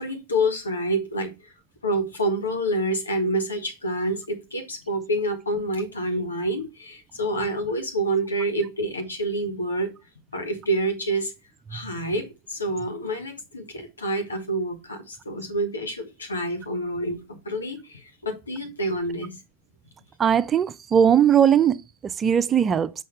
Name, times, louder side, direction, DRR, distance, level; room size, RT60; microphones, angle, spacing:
voice 1, 0.0-1.3 1.8-9.9 10.3-11.3 11.7-19.4, right 1 dB, 80° left, 1.7 m, -27 dB
voice 2, 20.2-22.9, right 8 dB, 25° right, 0.4 m, -19 dB
6.4 x 5.5 x 3.3 m
figure-of-eight pair, 95°, 0 cm